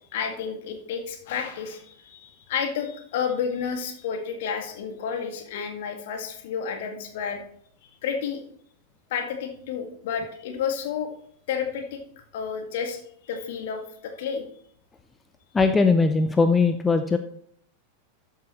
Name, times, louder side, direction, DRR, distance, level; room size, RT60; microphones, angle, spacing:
voice 1, 0.1-7.4 8.0-8.4 9.1-11.1 11.5-12.0 12.3-14.5, left 7 dB, 55° left, 4 dB, 1.8 m, -31 dB
voice 2, 15.5-17.2, left 4 dB, 15° left, 8 dB, 0.5 m, -20 dB
13.5 x 7.3 x 3.1 m, 0.64 s
figure-of-eight pair, 90°, 0 cm